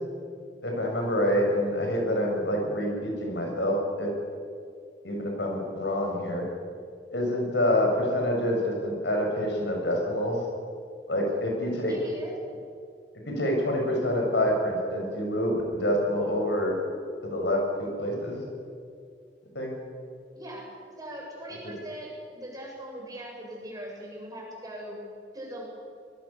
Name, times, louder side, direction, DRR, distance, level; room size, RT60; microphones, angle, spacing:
voice 1, 0.6-4.1 5.0-6.4 7.1-10.5 11.1-11.9 13.3-16.7 17.2-18.4 19.6-19.7, left 1 dB, 80° left, 0 dB, 6.9 m, -27 dB
voice 2, 11.9-12.4 20.3-20.6 21.0-25.0 25.3-25.7, right 1 dB, 20° right, -3 dB, 7.6 m, -40 dB
25.0 x 22.0 x 7.3 m, 2.2 s
head